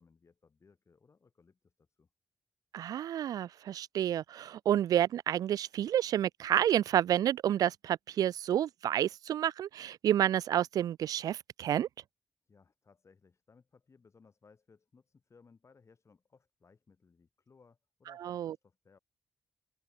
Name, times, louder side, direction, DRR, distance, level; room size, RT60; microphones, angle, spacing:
voice 1, 0.0-2.1 12.4-19.0, left 5 dB, 50° left, 7.9 m, -64 dB
voice 2, 2.7-11.9 18.2-18.5, right 11 dB, 80° right, 0.7 m, -29 dB
open air
supercardioid pair, 45°, 6 cm